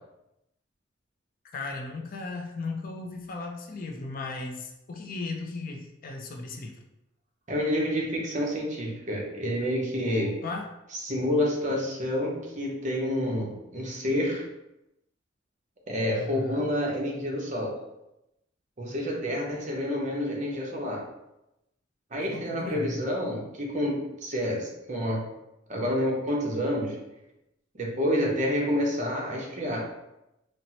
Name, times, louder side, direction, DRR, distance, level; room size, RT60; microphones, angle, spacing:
voice 1, 1.5-6.8 10.1-10.7 16.2-16.7 22.3-22.9, left 3 dB, 45° left, 2 dB, 0.4 m, -36 dB
voice 2, 7.5-10.3 11.0-14.4 15.9-17.7 18.8-21.0 22.1-25.2 25.7-27.0 27.7-29.9, equal, 40° right, -2 dB, 0.7 m, -28 dB
4.2 x 2.0 x 2.8 m, 0.90 s
head